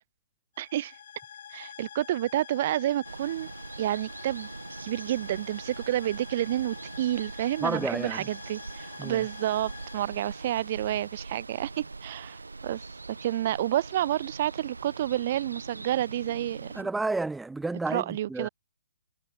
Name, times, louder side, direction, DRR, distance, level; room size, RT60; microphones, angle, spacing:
sound 1, 0.5-11.1, left 9 dB, 55° left, 7.9 m, -47 dB
voice 1, 0.6-1.0 1.5-3.5 3.8-4.5 4.8-16.9 17.9-18.5, right 13 dB, 45° right, 1.3 m, -30 dB
Water, 3.0-16.8, right 3 dB, 85° right, 7.1 m, -42 dB
voice 2, 7.6-8.3 9.0-9.2 16.8-18.5, right 3 dB, 5° right, 0.9 m, -31 dB
figure-of-eight pair, 135°, 0 cm